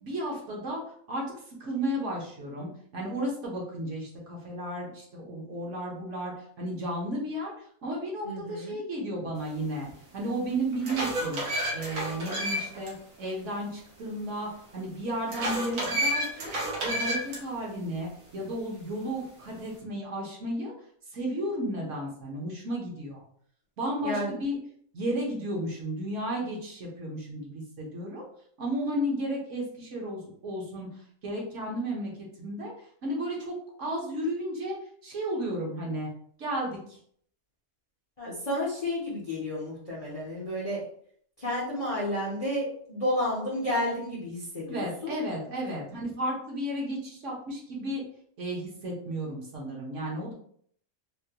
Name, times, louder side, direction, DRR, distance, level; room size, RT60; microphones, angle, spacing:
voice 1, 0.0-0.8 1.1-11.4 11.7-16.5 16.8-20.7 21.1-23.2 23.8-24.6 24.9-28.2 28.6-30.9 31.2-32.1 32.4-32.7 33.0-34.8 35.0-36.1 36.4-37.0 44.7-48.0 48.4-50.3, right 1 dB, 60° right, -2 dB, 1.2 m, -33 dB
voice 2, 8.2-8.8 24.0-24.3 38.2-40.9 41.4-45.1 45.6-45.7, left 1 dB, 35° left, -6 dB, 0.6 m, -31 dB
sound 1, 9.9-10.0 10.5-12.9 13.3-13.4 15.3-17.4, right 1 dB, 80° right, 1.4 m, -30 dB
3.7 x 2.2 x 2.8 m, 0.62 s
omnidirectional pair, 1.5 m